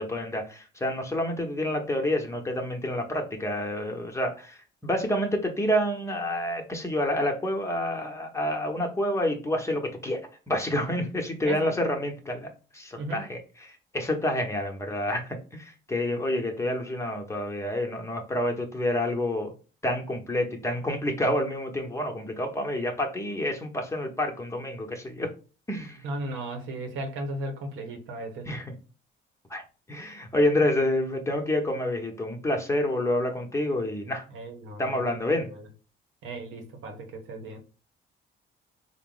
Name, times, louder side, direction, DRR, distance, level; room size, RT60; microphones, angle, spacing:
voice 1, 0.0-10.2 10.5-19.5 19.8-25.3 25.7-26.0 28.4-28.7 29.5-29.6 29.9-34.2 34.8-35.5, left 1 dB, 15° left, 0.8 m, -28 dB
voice 2, 12.9-13.3 26.0-28.5 34.3-35.1 35.4-35.6 36.2-37.6, right 1 dB, 85° right, 0.9 m, -36 dB
3.9 x 2.0 x 3.8 m
cardioid pair, 90°, 20 cm